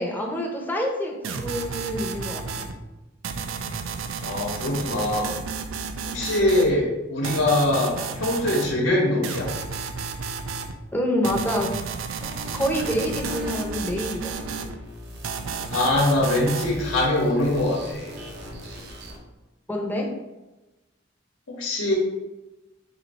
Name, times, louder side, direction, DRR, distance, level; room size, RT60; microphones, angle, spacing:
voice 1, 0.0-2.7 10.9-11.7 12.5-14.3 19.7-20.1, equal, 10° left, -1 dB, 0.6 m, -27 dB
sound 1, 1.2-2.7 3.2-6.7 7.2-8.7 9.2-10.7 11.2-14.7 15.2-16.7, right 5 dB, 85° right, 0.4 m, -32 dB
voice 2, 4.2-5.4 6.1-9.5 15.7-18.1 21.5-21.9, left 1 dB, 85° left, -3 dB, 0.9 m, -23 dB
sound 2, 12.2-19.2, left 1 dB, 55° right, 0.7 m, -38 dB
4.0 x 2.6 x 4.1 m, 1.1 s
head